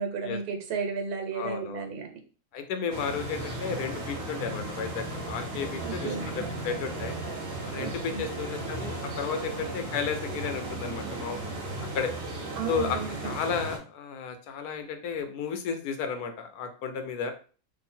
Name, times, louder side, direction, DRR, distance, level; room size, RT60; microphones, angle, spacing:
voice 1, 0.0-2.2 5.8-6.3 7.8-8.3 12.6-13.3, right 5 dB, 75° right, 3 dB, 1.3 m, -34 dB
voice 2, 1.3-1.8 2.5-7.2 7.6-11.4 11.9-12.1 12.7-13.0 13.2-17.3, left 6 dB, 75° left, 7 dB, 1.1 m, -33 dB
sound 1, 2.9-13.8, right 2 dB, 40° right, 1.0 m, -35 dB
2.8 x 2.5 x 4.2 m, 0.39 s
omnidirectional pair, 1.7 m